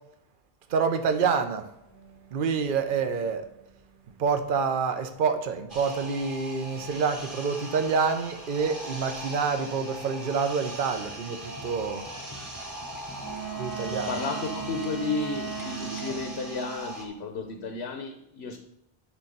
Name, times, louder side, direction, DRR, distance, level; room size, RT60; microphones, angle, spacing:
voice 1, 0.7-1.7 2.3-3.4 4.2-12.1 13.6-14.1, right 5 dB, 55° right, 0.9 m, -27 dB
sound 1, 1.8-4.9 6.7-7.4 13.2-17.2, right 6 dB, 85° right, 2.6 m, -40 dB
sound 2, 5.7-17.0, right 1 dB, 30° right, 1.7 m, -40 dB
sound 3, 10.9-16.2, equal, 20° left, 0.7 m, -45 dB
voice 2, 13.9-18.6, left 4 dB, 75° left, 1.1 m, -33 dB
10.5 x 4.3 x 5.4 m
omnidirectional pair, 1.1 m